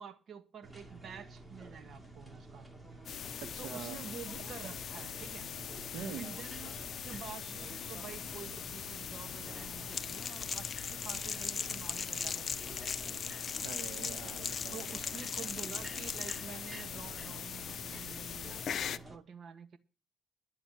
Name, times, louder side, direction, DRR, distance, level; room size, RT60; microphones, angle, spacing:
voice 1, 0.0-2.7 3.6-5.5 6.1-13.1 14.7-19.8, right 6 dB, 60° right, 1.7 m, -49 dB
sound 1, 0.6-19.2, right 2 dB, 10° right, 2.5 m, -50 dB
sound 2, 3.1-19.0, left 8 dB, 60° left, 0.7 m, -42 dB
voice 2, 3.4-4.0 5.9-6.3 13.6-14.9, right 8 dB, 90° right, 1.7 m, -44 dB
Crackle, 9.9-16.4, left 5 dB, 35° left, 1.1 m, -39 dB
12.0 x 7.5 x 7.8 m
cardioid pair, 90°, 0 cm